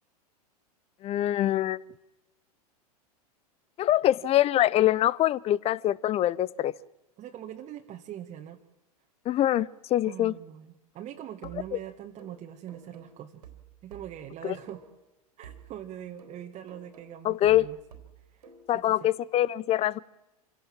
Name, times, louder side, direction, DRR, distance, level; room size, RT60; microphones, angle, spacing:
voice 1, 1.0-1.8 3.8-6.7 9.3-10.4 14.4-14.5 17.2-17.7 18.7-20.0, left 13 dB, 30° left, 0.7 m, -24 dB
voice 2, 7.2-8.6 10.0-13.4 13.8-14.8 15.4-17.8 18.3-18.5 18.7-19.1, right 11 dB, 35° right, 1.8 m, -42 dB
sound 1, 11.4-15.1 15.4-19.1, right 6 dB, 80° right, 3.6 m, -52 dB
26.5 x 17.0 x 7.5 m
hypercardioid pair, 100°, 20 cm